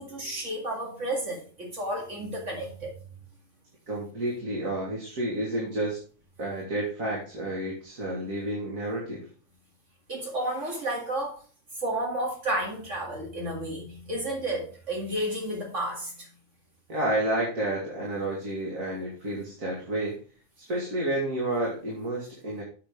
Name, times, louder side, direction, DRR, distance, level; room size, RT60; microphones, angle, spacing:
voice 1, 0.0-2.9 10.1-11.4 11.8-16.3, right 1 dB, 65° right, 0 dB, 2.4 m, -32 dB
voice 2, 3.9-6.0 6.4-9.3 16.9-20.2 20.6-22.6, right 1 dB, 90° right, -4 dB, 2.9 m, -30 dB
7.9 x 6.9 x 5.0 m, 0.40 s
omnidirectional pair, 1.4 m